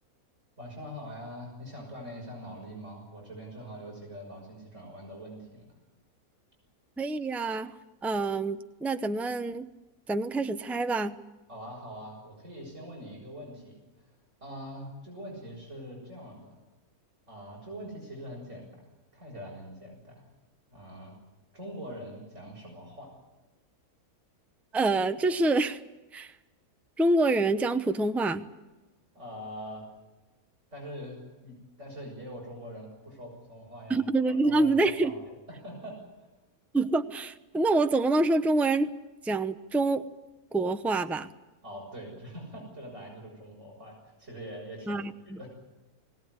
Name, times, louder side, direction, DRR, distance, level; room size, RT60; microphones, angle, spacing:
voice 1, 0.6-5.7 11.5-16.6 17.3-18.8 19.1-20.3 20.7-21.2 21.5-23.1 29.1-29.8 30.7-34.7 35.0-36.0 41.6-45.5, equal, 50° right, -1 dB, 6.7 m, -43 dB
voice 2, 7.0-7.7 8.0-9.7 10.1-11.1 24.7-25.8 26.1-26.3 27.0-28.5 33.9-35.1 36.7-38.9 39.2-40.1 40.5-41.3 44.9-45.4, right 2 dB, ahead, 9 dB, 0.5 m, -26 dB
21.0 x 17.5 x 9.6 m, 1.1 s
omnidirectional pair, 1.6 m